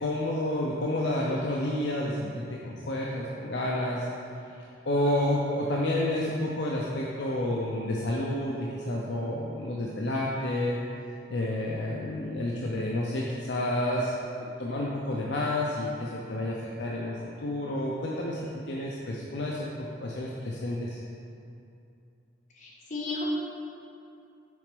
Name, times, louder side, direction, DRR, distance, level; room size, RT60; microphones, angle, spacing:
voice 1, 0.0-4.0 4.9-10.8 11.3-14.1 14.6-17.1 17.4-18.4 18.7-19.7 20.0-21.0, left 1 dB, 65° left, -4 dB, 0.6 m, -30 dB
voice 2, 22.6-23.2, left 3 dB, 45° left, -6 dB, 1.5 m, -34 dB
6.4 x 4.3 x 5.1 m, 2.6 s
head